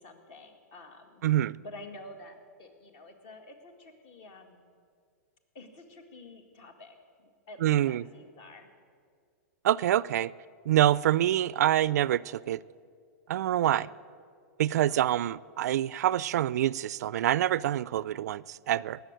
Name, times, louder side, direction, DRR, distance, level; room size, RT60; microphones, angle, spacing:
voice 1, 0.0-1.2 1.6-4.6 5.5-8.7 13.6-13.9 14.8-15.1, left 2 dB, 50° left, 6 dB, 2.0 m, -49 dB
voice 2, 1.2-1.6 7.6-8.0 9.6-10.3 10.7-12.6 13.3-13.9 14.6-19.0, right 12 dB, 75° right, 21 dB, 0.3 m, -26 dB
18.5 x 7.0 x 8.9 m, 2.2 s
hypercardioid pair, 140°, 9 cm